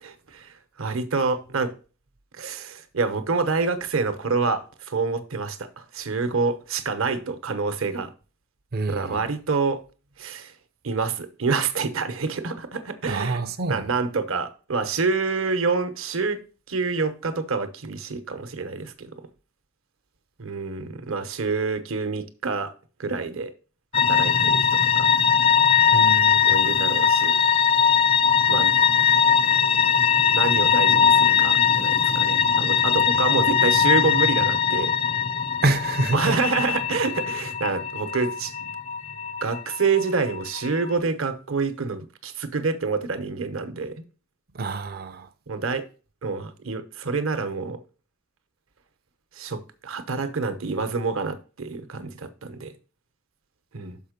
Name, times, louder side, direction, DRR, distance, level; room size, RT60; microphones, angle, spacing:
voice 1, 0.0-1.7 2.3-8.1 8.9-9.8 10.2-10.5 10.8-13.4 13.7-16.4 16.7-19.2 20.4-22.7 23.0-23.5 23.9-25.1 26.4-27.4 28.5-28.7 30.3-34.9 36.1-38.5 39.4-44.0 45.5-45.8 46.2-47.8 49.3-52.7 53.7-54.0, right 4 dB, 70° right, 0.9 m, -27 dB
voice 2, 8.7-9.2 13.1-13.8 25.9-26.6 35.6-36.4 44.5-45.3, right 2 dB, 45° right, 0.5 m, -26 dB
sound 1, 23.9-40.9, left 7 dB, 25° left, 0.3 m, -20 dB
6.4 x 5.5 x 5.1 m
head